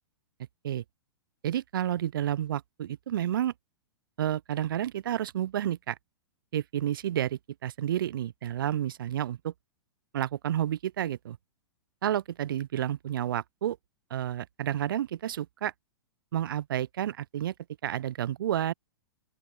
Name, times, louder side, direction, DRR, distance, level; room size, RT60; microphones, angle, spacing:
voice 1, 1.4-3.5 4.2-6.0 6.5-9.5 10.1-11.4 12.0-13.8 14.1-15.7 16.3-17.5 17.8-18.7, right 11 dB, 55° right, 0.9 m, -30 dB
open air
figure-of-eight pair, 105°, 14 cm